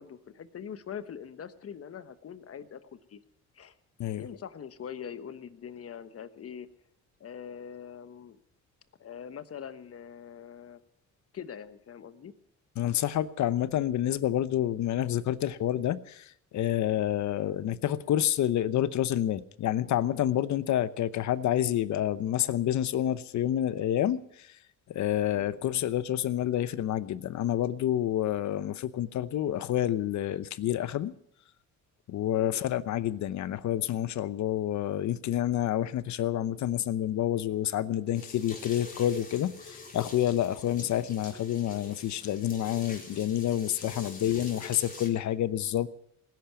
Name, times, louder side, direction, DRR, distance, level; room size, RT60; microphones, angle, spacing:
voice 1, 0.0-3.2 3.5-3.7 4.2-6.7 7.2-8.4 9.0-10.8 11.3-12.3 25.3-25.5 32.4-32.6 44.2-44.4, left 8 dB, 50° left, 12 dB, 1.2 m, -43 dB
voice 2, 12.8-24.6 24.9-31.1 32.1-45.9, left 11 dB, 70° left, 16 dB, 0.9 m, -28 dB
sound 1, 38.1-45.1, left 3 dB, 25° left, 4.2 m, -45 dB
19.0 x 10.5 x 7.0 m, 0.69 s
cardioid pair, 90°, 30 cm